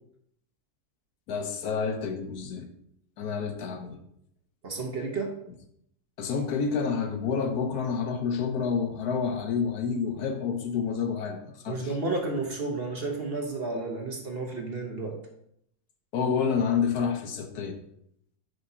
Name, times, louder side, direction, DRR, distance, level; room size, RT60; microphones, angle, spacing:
voice 1, 1.3-2.7 3.2-4.0 6.2-11.9 16.1-17.8, left 6 dB, 75° left, 6 dB, 1.3 m, -29 dB
voice 2, 4.6-5.4 11.7-15.2, right 3 dB, 45° right, 2 dB, 1.1 m, -32 dB
9.8 x 4.8 x 2.7 m, 0.73 s
omnidirectional pair, 1.7 m